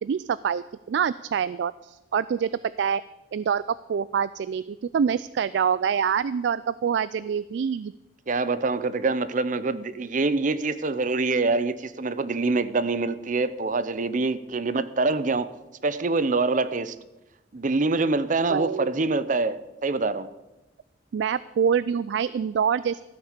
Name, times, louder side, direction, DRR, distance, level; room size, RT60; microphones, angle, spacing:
voice 1, 0.0-2.5 2.8-3.0 3.3-7.9 18.5-18.9 21.1-23.0, right 7 dB, 75° right, 0.3 m, -26 dB
voice 2, 8.3-15.5 15.8-16.9 17.5-20.3, right 3 dB, 45° right, 0.7 m, -25 dB
14.0 x 8.6 x 6.6 m
head